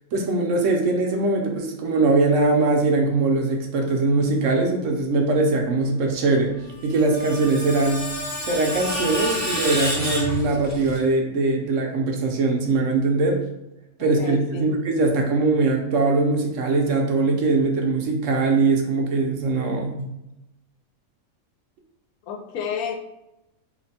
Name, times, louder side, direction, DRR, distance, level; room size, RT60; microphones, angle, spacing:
voice 1, 0.1-6.5 6.8-8.1 8.4-13.4 14.0-20.1, right 3 dB, 70° right, 1 dB, 0.9 m, -21 dB
Screech, 6.7-11.0, equal, 20° left, 0.6 m, -29 dB
voice 2, 14.2-14.7 22.3-22.9, left 7 dB, 90° left, 2 dB, 1.1 m, -30 dB
2.8 x 2.2 x 4.0 m, 0.88 s
omnidirectional pair, 1.5 m